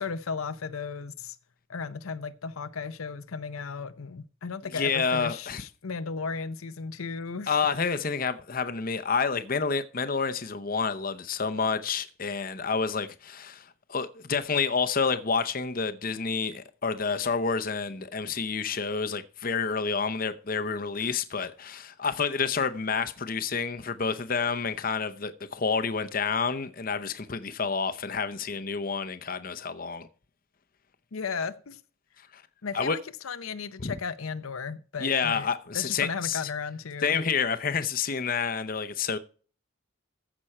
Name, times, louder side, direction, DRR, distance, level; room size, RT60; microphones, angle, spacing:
voice 1, 0.0-1.4 1.7-7.6 31.1-31.8 32.6-35.5 35.7-37.2, left 5 dB, 80° left, 0.7 m, -35 dB
voice 2, 4.7-5.6 7.5-30.1 32.3-32.4 32.7-33.0 33.8-33.9 35.0-36.4 37.0-39.2, left 5 dB, 40° left, 0.7 m, -29 dB
15.0 x 6.1 x 4.4 m
head